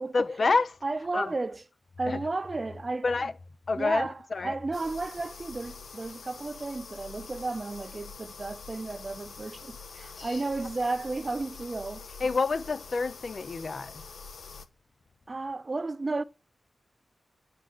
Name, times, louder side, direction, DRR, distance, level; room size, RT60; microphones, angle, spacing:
voice 1, 0.1-0.8 1.1-1.3 2.1-2.2 3.0-3.3 3.7-4.5 10.2-10.4 12.2-14.0, left 3 dB, 45° left, 0.9 m, -28 dB
voice 2, 0.8-1.6 2.0-3.1 3.7-12.1 15.3-16.2, right 3 dB, 30° right, 0.6 m, -33 dB
sound 1, 4.7-14.7, left 5 dB, 75° left, 1.3 m, -45 dB
10.0 x 7.7 x 7.9 m
wide cardioid pair, 170°, 0 cm